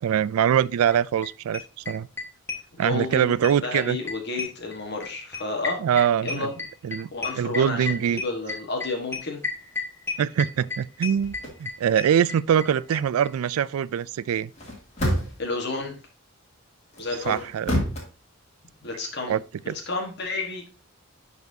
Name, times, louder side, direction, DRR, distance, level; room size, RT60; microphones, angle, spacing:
voice 1, 0.0-2.1 2.8-4.0 5.8-6.5 6.8-7.1 7.4-8.2 10.2-14.5 17.3-17.9 19.3-19.4 19.7-19.8, right 9 dB, 85° right, 0.3 m, -23 dB
sound 1, 0.9-1.0 1.2-1.3 1.5-3.2 3.4-12.7 12.9-13.0 13.2-13.3 13.5-13.6, left 4 dB, 10° left, 1.3 m, -32 dB
voice 2, 2.8-5.8 6.2-6.5 7.1-9.4 15.4-16.0 17.0-17.4 18.8-19.4 19.9-20.6, left 3 dB, 50° left, 1.4 m, -31 dB
sound 2, 11.2-11.6 14.4-15.5 16.9-18.0, equal, 30° left, 2.5 m, -28 dB
11.5 x 4.1 x 2.7 m
head